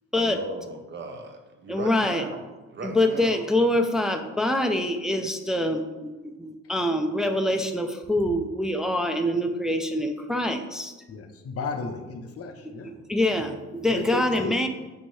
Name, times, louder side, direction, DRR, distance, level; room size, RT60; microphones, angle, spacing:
voice 1, 0.1-2.4 2.7-3.4, right 2 dB, 40° right, 5 dB, 0.7 m, -37 dB
voice 2, 1.7-2.3 2.8-10.9 12.8-14.7, left 1 dB, ahead, 5 dB, 0.3 m, -25 dB
voice 3, 11.1-12.9 13.9-14.1 14.4-14.5, left 4 dB, 50° left, 6 dB, 0.5 m, -34 dB
6.4 x 2.6 x 3.0 m, 1.2 s
cardioid pair, 90°, 30 cm